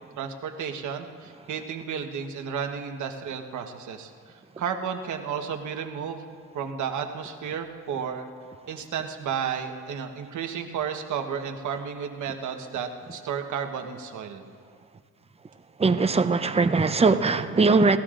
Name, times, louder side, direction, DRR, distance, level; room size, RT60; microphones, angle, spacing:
voice 1, 0.2-6.2 6.5-8.3 8.7-14.4, right 7 dB, 75° right, 5 dB, 1.3 m, -32 dB
voice 2, 15.8-18.0, right 4 dB, 20° right, 10 dB, 0.7 m, -20 dB
29.5 x 14.5 x 2.5 m, 2.1 s
cardioid pair, 90°, 30 cm